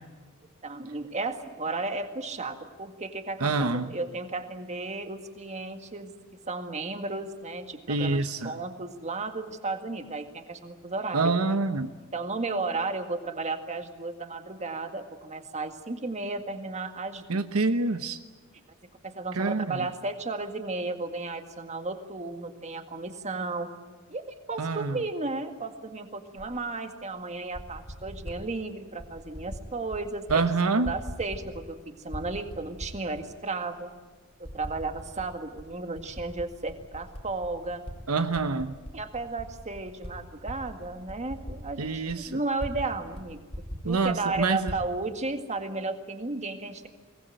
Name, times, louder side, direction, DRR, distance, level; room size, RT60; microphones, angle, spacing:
voice 1, 0.6-6.1 6.5-11.3 12.1-17.2 19.0-23.7 24.1-24.2 24.5-30.4 30.7-33.9 34.4-37.8 38.9-43.4 43.9-46.9, right 3 dB, 35° right, 7 dB, 1.9 m, -34 dB
voice 2, 3.4-3.9 7.9-8.5 11.1-11.9 17.3-18.2 19.3-19.8 24.6-25.0 30.3-30.9 38.1-38.7 41.8-42.4 43.8-44.7, right 3 dB, 80° right, 9 dB, 1.0 m, -26 dB
Typing, 26.4-26.5 27.3-28.4 29.0-29.6 29.9-30.4 30.7-31.8 32.1-33.3 33.8-33.9 34.4-35.3 35.6-38.0 38.3-42.9 43.1-43.2 43.5-44.8, equal, 30° left, 3.2 m, -40 dB
23.0 x 19.0 x 9.1 m, 1.4 s
head